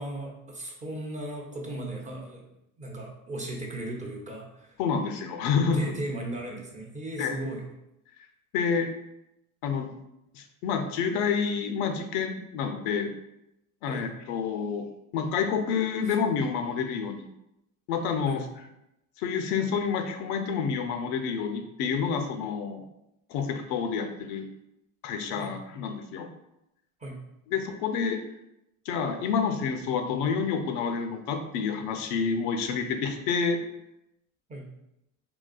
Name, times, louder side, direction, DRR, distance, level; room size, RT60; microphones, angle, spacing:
voice 1, 0.0-2.5 2.8-4.8 5.7-7.7 13.9-14.1 16.1-16.2 18.3-18.4 25.4-25.6 27.0-27.2 34.5-34.7, right 1 dB, 15° right, -1 dB, 0.6 m, -37 dB
voice 2, 4.8-5.9 7.2-7.4 8.5-8.9 9.6-9.9 10.3-13.1 13.8-14.9 15.1-17.2 17.9-18.4 19.2-22.8 23.3-24.5 25.0-26.3 27.5-28.2 28.9-33.6, left 6 dB, 60° left, 6 dB, 0.5 m, -28 dB
3.8 x 2.3 x 2.4 m, 0.85 s
hypercardioid pair, 85°, 42 cm